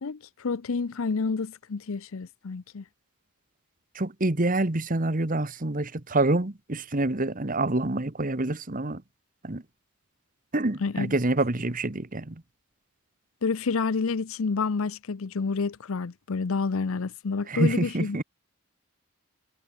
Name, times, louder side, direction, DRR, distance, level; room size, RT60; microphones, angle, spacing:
voice 1, 0.0-2.8 10.8-11.2 13.4-18.2, left 4 dB, 65° left, 0.6 m, -29 dB
voice 2, 3.9-9.0 9.4-9.6 10.5-12.4 17.5-18.2, right 2 dB, 40° right, 1.3 m, -27 dB
head